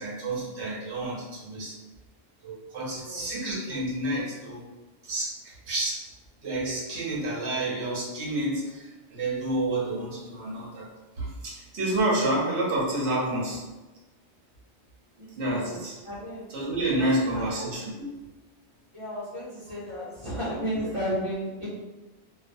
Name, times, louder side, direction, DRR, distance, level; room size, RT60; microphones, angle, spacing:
voice 1, 0.0-1.7 2.4-4.7 5.0-6.0 6.4-10.9 11.2-13.6 15.4-16.0 16.5-18.1, right 1 dB, 70° right, -4 dB, 1.0 m, -29 dB
voice 2, 15.2-16.5 17.0-17.5 18.9-21.7, equal, 30° right, -10 dB, 1.0 m, -34 dB
2.5 x 2.3 x 2.5 m, 1.1 s
omnidirectional pair, 1.2 m